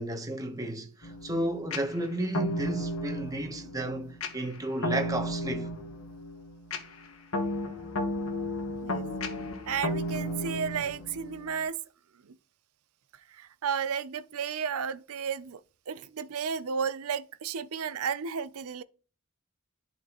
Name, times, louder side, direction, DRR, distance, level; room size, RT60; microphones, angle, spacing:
voice 1, 0.0-5.7, right 1 dB, 15° right, 1.0 m, -33 dB
sound 1, 1.0-11.6, equal, 65° left, 1.3 m, -34 dB
voice 2, 8.7-9.1 9.7-11.8 12.2-12.3 13.3-15.6 15.9-18.8, right 6 dB, 70° right, 0.5 m, -33 dB
11.5 x 4.3 x 3.0 m
head